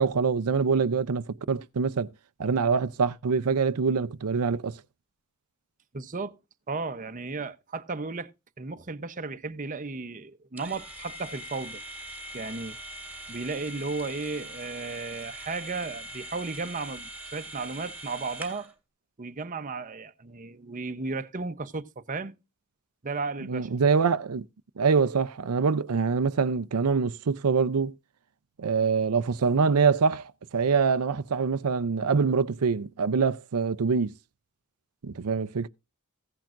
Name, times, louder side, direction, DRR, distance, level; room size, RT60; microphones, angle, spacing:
voice 1, 0.0-2.1 2.4-4.8 23.4-24.4 24.8-27.9 28.6-34.1 35.0-35.7, right 5 dB, 85° right, 0.6 m, -25 dB
voice 2, 5.9-6.4 6.7-8.3 8.6-11.8 12.3-12.8 13.3-18.7 19.2-22.4 23.0-23.7, right 3 dB, 35° right, 0.8 m, -34 dB
sound 1, 10.6-18.7, right 1 dB, 5° right, 1.9 m, -42 dB
15.5 x 10.5 x 2.5 m
head